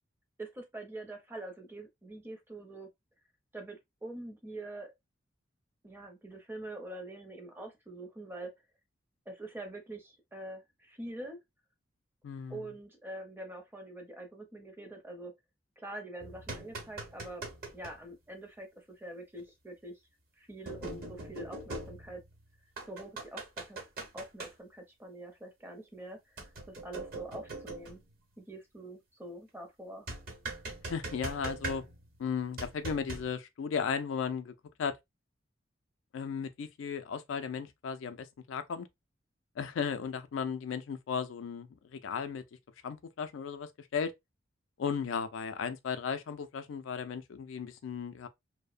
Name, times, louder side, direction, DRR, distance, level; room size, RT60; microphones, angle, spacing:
voice 1, 0.4-2.9 3.5-4.9 5.8-8.5 9.3-11.4 12.5-15.3 15.8-17.5 17.7-20.0 20.4-22.2 22.8-23.8 24.1-28.0 28.4-30.1, right 1 dB, 10° right, 0.5 m, -45 dB
voice 2, 12.2-12.6 30.9-31.8 32.2-34.5 34.8-35.0 36.1-38.9 39.6-42.4 42.8-44.1 44.8-48.3, left 6 dB, 85° left, 0.4 m, -35 dB
sound 1, 16.2-18.0 19.4-19.5 20.7-22.4 22.8-24.5 26.4-28.1 30.1-32.2 32.6-33.3, right 2 dB, 50° right, 0.9 m, -41 dB
2.6 x 2.0 x 2.4 m
head